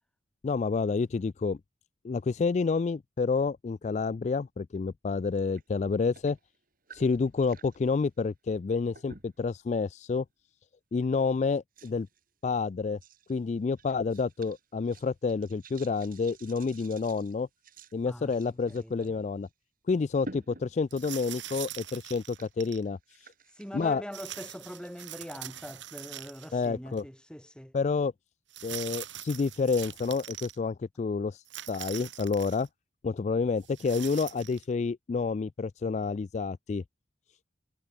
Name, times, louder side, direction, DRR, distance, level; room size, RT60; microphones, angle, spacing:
voice 1, 0.4-1.6 2.0-6.4 6.9-10.2 10.9-12.1 12.4-13.0 13.3-17.5 17.9-19.5 19.9-23.3 23.7-24.0 26.5-27.0 27.7-28.1 28.6-32.7 33.0-36.8, left 4 dB, 40° left, 0.3 m, -29 dB
sound 1, 5.3-5.6 5.9-7.8 8.9-9.5 10.1-10.3 11.0-11.1 11.8-12.2 13.0-13.4 13.8-19.1 19.4-19.5 20.2-21.6 22.0-24.9, right 2 dB, 45° right, 7.2 m, -51 dB
voice 2, 18.7-19.1 23.6-27.7, equal, 5° left, 4.6 m, -43 dB
sound 2, 20.9-22.8 24.1-26.7 27.0-27.1 28.5-30.6 31.5-32.7 33.6-34.6, right 13 dB, 75° right, 3.4 m, -42 dB
head